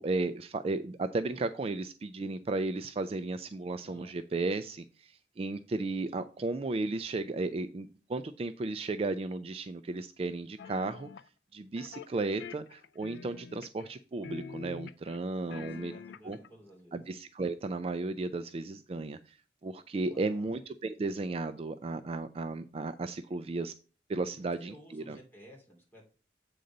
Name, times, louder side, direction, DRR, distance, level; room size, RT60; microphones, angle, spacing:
voice 1, 0.0-11.1 11.5-15.9 16.2-16.4 16.9-19.4 19.6-23.7 24.1-25.2, right 3 dB, 35° right, 10 dB, 0.3 m, -34 dB
voice 2, 3.8-4.1 15.4-17.0 20.0-20.6 24.3-26.0, equal, 10° left, -2 dB, 2.6 m, -54 dB
sound 1, 10.6-11.3 11.8-12.1 12.4-14.0 14.2-15.2 15.5-16.5, left 5 dB, 80° left, 0.3 m, -46 dB
8.0 x 3.8 x 5.3 m, 0.37 s
head